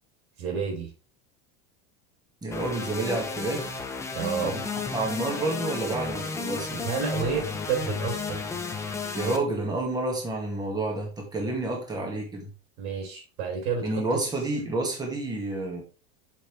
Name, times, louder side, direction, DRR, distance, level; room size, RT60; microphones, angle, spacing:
voice 1, 0.4-0.9 4.1-4.6 6.7-8.4 12.8-14.0, right 6 dB, 80° right, 3.8 m, -30 dB
voice 2, 2.4-3.7 4.4-6.8 9.1-12.5 13.8-15.8, right 2 dB, 10° right, 2.0 m, -29 dB
sound 1, 2.5-9.4, left 4 dB, 10° left, 0.7 m, -33 dB
6.8 x 5.7 x 3.4 m
cardioid pair, 170°, 32 cm